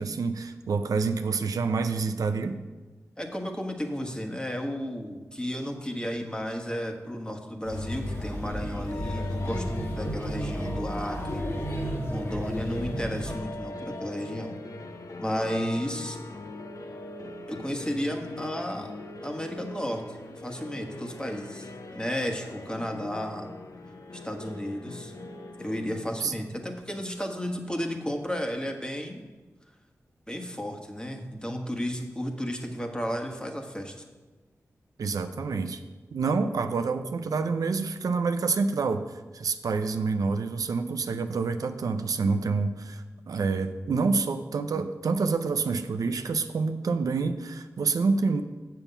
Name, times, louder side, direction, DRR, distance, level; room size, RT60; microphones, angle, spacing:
voice 1, 0.0-2.6 26.2-26.3 35.0-35.8 36.1-48.4, right 4 dB, 85° right, 9 dB, 0.5 m, -27 dB
voice 2, 3.2-11.5 12.1-14.6 15.2-16.2 17.5-18.9 19.2-23.5 24.1-25.1 25.6-29.2 30.3-33.9, equal, 15° left, 3 dB, 1.4 m, -33 dB
Male speech man speaking / Child speech kid speaking / Chatter, 7.6-13.3, equal, 50° left, 2.3 m, -32 dB
sound 1, 8.9-27.0, left 2 dB, 70° left, 0.8 m, -42 dB
7.1 x 5.7 x 6.9 m, 1.3 s
cardioid pair, 45°, 6 cm